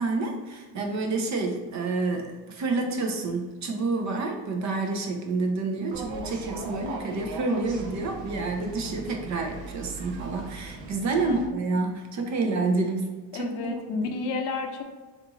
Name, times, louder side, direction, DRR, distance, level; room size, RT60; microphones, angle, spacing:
voice 1, 0.0-13.1 13.3-13.7, right 3 dB, 45° right, 2 dB, 0.6 m, -28 dB
sound 1, 5.9-11.5, right 4 dB, 80° right, 0.8 m, -39 dB
voice 2, 11.2-11.5 13.3-14.8, left 4 dB, 70° left, 4 dB, 0.6 m, -31 dB
3.6 x 2.5 x 3.0 m, 1.3 s
cardioid pair, 135°, 41 cm